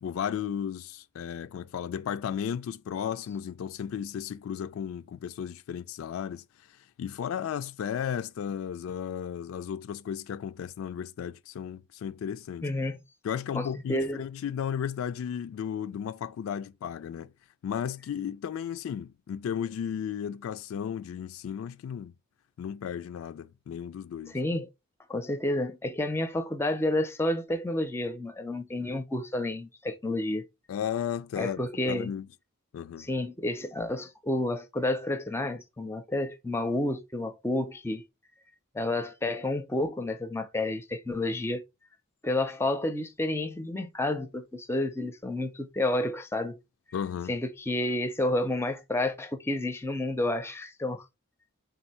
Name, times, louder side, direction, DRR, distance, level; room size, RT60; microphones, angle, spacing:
voice 1, 0.0-6.4 7.0-12.7 13.2-17.3 17.6-22.1 22.6-24.4 30.7-31.6 31.9-32.3 32.7-33.1 46.9-47.3, left 8 dB, 75° left, 0.3 m, -34 dB
voice 2, 12.6-13.0 13.5-14.2 24.3-24.7 25.1-30.4 31.4-32.1 33.0-38.0 38.7-41.6 42.2-46.6 47.3-51.0, left 1 dB, 10° left, 0.4 m, -30 dB
3.9 x 2.6 x 4.2 m
head